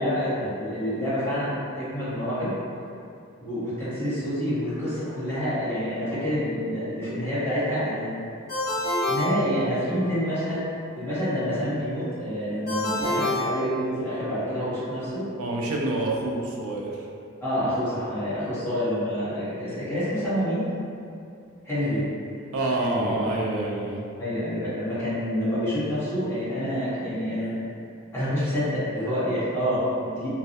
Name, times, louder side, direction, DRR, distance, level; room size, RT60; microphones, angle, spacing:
voice 1, 0.0-2.5 3.4-8.1 9.0-10.6 11.0-15.3 17.4-20.6 21.6-22.1 22.8-23.4 24.2-27.5 28.1-30.3, equal, 10° left, -14 dB, 1.0 m, -27 dB
Ringtone, 8.5-10.2 12.7-14.3, left 1 dB, 50° left, 0.7 m, -28 dB
voice 2, 15.4-16.9 22.5-24.0, right 2 dB, 80° right, -1 dB, 0.3 m, -27 dB
2.2 x 2.0 x 2.7 m, 2.5 s
head